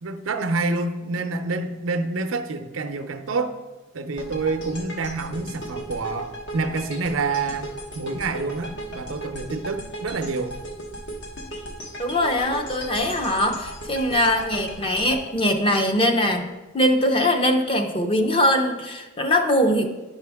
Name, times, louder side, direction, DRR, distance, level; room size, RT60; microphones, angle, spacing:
voice 1, 0.0-3.6 3.9-10.5, right 3 dB, 85° right, 0.6 m, -27 dB
sound 1, 4.2-16.4, right 1 dB, 60° left, 1.2 m, -36 dB
voice 2, 12.0-19.9, left 1 dB, 25° left, 0.7 m, -22 dB
10.0 x 5.6 x 3.5 m
head